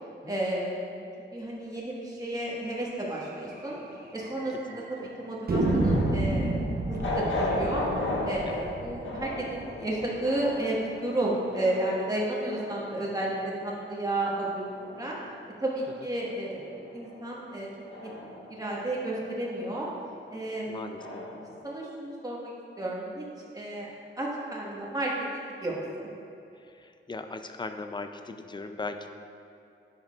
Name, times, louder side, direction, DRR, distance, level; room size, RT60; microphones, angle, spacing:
voice 1, 0.2-1.0 1.3-3.8 4.1-7.8 8.2-13.3 13.6-14.6 14.9-15.2 15.6-17.7 18.0-18.1 18.5-19.9 20.3-20.9 21.6-22.5 22.8-23.3 23.5-23.9 24.2-26.1, right 1 dB, 20° right, -5 dB, 1.5 m, -32 dB
sound 1, 2.7-2.8 3.1-3.2 3.5-3.6 4.2-4.8 5.5-10.3, right 2 dB, 50° right, 0.8 m, -30 dB
sound 2, 3.4-16.0 16.3-21.6, left 1 dB, 75° left, 1.3 m, -38 dB
voice 2, 4.7-5.1 8.4-8.7 20.7-21.3 26.5-29.1, left 3 dB, 20° left, 7 dB, 0.4 m, -39 dB
10.0 x 6.4 x 2.4 m, 2.6 s
wide cardioid pair, 100°, 21 cm